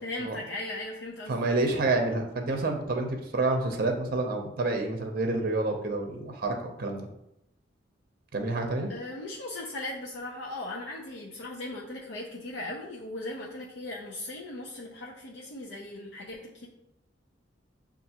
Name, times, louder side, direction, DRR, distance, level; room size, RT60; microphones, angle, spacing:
voice 1, 0.0-1.4 8.9-16.7, left 2 dB, 70° left, -2 dB, 0.5 m, -38 dB
voice 2, 1.3-7.1 8.3-8.9, right 2 dB, 50° right, 3 dB, 0.6 m, -28 dB
6.6 x 2.4 x 2.8 m, 0.84 s
head